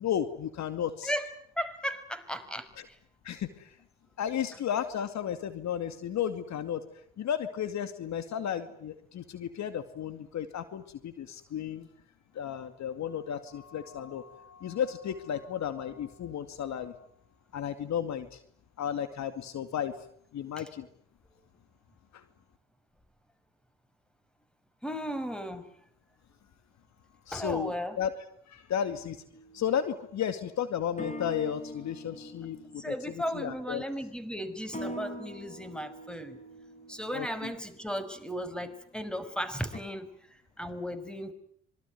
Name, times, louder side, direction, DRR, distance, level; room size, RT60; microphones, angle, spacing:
voice 1, 0.0-1.1 3.2-3.7 4.2-6.8 7.2-11.9 12.3-16.9 17.5-18.4 18.8-19.9 20.3-20.9 22.1-22.2 27.3-28.1 28.5-29.2 29.5-32.9 33.3-33.8 37.1-37.5, left 9 dB, 60° left, 11 dB, 2.4 m, -33 dB
voice 2, 1.0-3.0 20.6-20.7 24.8-25.7 27.3-28.0 32.8-36.4 36.9-41.3, equal, 5° left, 12 dB, 5.6 m, -36 dB
sound 1, 29.3-29.7 31.0-38.1 39.7-39.8, left 1 dB, 25° left, 7.3 m, -43 dB
26.0 x 23.5 x 9.4 m, 0.64 s
hypercardioid pair, 50°, 31 cm